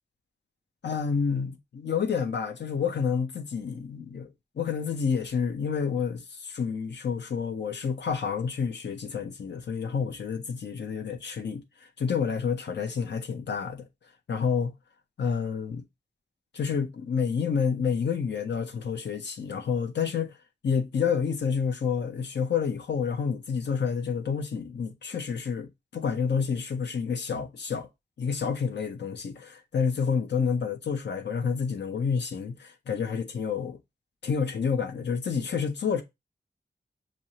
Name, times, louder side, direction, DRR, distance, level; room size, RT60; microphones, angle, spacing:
voice 1, 0.8-4.3 4.6-11.6 12.0-13.9 14.3-14.7 15.2-15.8 16.5-20.3 20.6-27.9 28.2-33.8 34.2-36.0, left 6 dB, 80° left, 0.6 m, -29 dB
6.1 x 2.0 x 2.7 m
wide cardioid pair, 60°, 18 cm